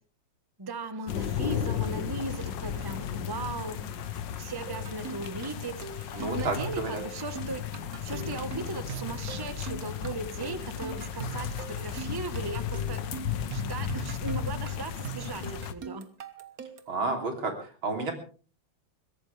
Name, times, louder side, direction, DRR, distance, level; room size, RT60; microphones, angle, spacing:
voice 1, 0.6-7.7 8.0-13.0 13.5-16.1, right 3 dB, 15° right, 10 dB, 1.0 m, -38 dB
sound 1, 1.1-15.7, left 9 dB, 70° left, 1.6 m, -35 dB
sound 2, 4.7-17.0, right 7 dB, 50° right, 1.7 m, -42 dB
voice 2, 6.1-7.0 16.9-18.1, right 3 dB, 80° right, 4 dB, 4.1 m, -31 dB
22.5 x 16.5 x 3.4 m, 0.37 s
omnidirectional pair, 2.2 m